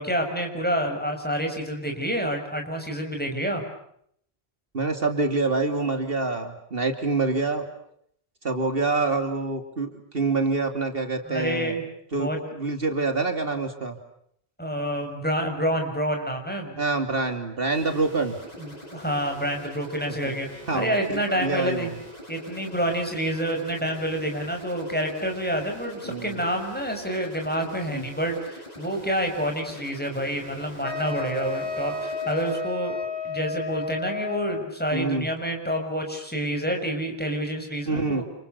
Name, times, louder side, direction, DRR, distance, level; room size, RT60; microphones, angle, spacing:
voice 1, 0.0-3.6 11.2-11.8 12.2-12.4 14.6-16.8 18.6-21.9 22.3-33.0 33.2-38.2, equal, 10° left, 3 dB, 6.7 m, -28 dB
voice 2, 4.7-7.6 8.4-11.7 12.1-14.0 16.8-18.4 20.2-20.3 20.7-21.9 26.0-26.4 27.9-28.0 34.9-35.3 37.9-38.2, right 3 dB, 65° right, 6 dB, 3.0 m, -26 dB
sound 1, 17.7-32.6, equal, 40° left, 8.0 m, -44 dB
Wind instrument woodwind instrument, 30.8-34.7, left 3 dB, 65° left, 4.3 m, -32 dB
29.5 x 29.0 x 6.9 m, 0.69 s
omnidirectional pair, 1.0 m